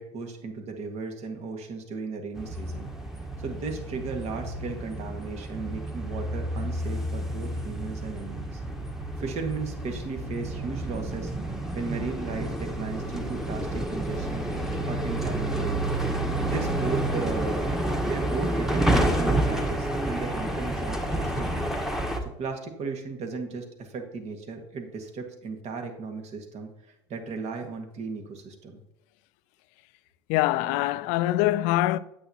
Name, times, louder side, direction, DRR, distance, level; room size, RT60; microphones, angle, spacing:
voice 1, 0.0-2.9 3.4-8.6 9.2-11.3 11.7-14.5 14.9-15.9 16.5-17.7 18.0-21.7 22.2-26.7 27.1-28.8, right 4 dB, 45° right, 1.8 m, -36 dB
sound 1, 2.4-22.2, right 1 dB, 5° right, 1.3 m, -29 dB
voice 2, 30.3-32.0, left 16 dB, 60° left, 0.4 m, -24 dB
8.7 x 8.4 x 2.9 m
hypercardioid pair, 85°, 15 cm